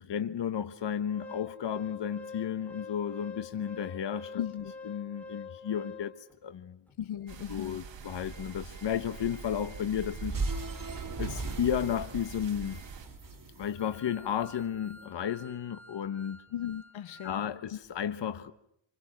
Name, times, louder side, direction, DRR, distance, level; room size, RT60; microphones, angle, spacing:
voice 1, 0.0-4.4 4.8-6.8 7.5-10.4 11.2-12.8 13.6-16.4 17.2-18.5, left 9 dB, 65° left, 1.3 m, -33 dB
Organ, 0.8-6.4 6.9-7.0 7.2-7.4 7.8-17.4 17.7-17.9, left 4 dB, 5° left, 6.2 m, -49 dB
voice 2, 4.4-4.7 7.0-7.8 16.5-17.4, left 10 dB, 85° left, 0.9 m, -37 dB
sound 1, 7.3-13.1, right 6 dB, 70° right, 2.8 m, -45 dB
sound 2, 10.2-14.6, right 3 dB, 45° right, 4.8 m, -37 dB
28.0 x 27.0 x 6.0 m
wide cardioid pair, 115°, 46 cm